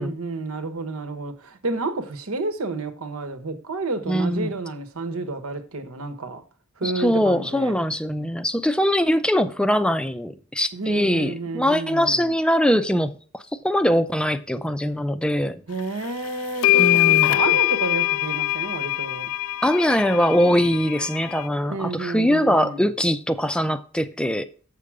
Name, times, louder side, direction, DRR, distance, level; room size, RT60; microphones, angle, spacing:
voice 1, 0.0-6.4 6.8-7.8 10.7-12.4 15.7-19.3 21.7-22.9, right 3 dB, 80° right, 1.2 m, -30 dB
voice 2, 4.1-4.5 6.8-13.1 13.6-15.6 16.7-17.4 19.6-24.4, equal, 5° left, 0.5 m, -22 dB
sound 1, 16.0-16.1 16.6-21.5, left 16 dB, 70° left, 0.3 m, -22 dB
7.6 x 6.7 x 4.8 m
head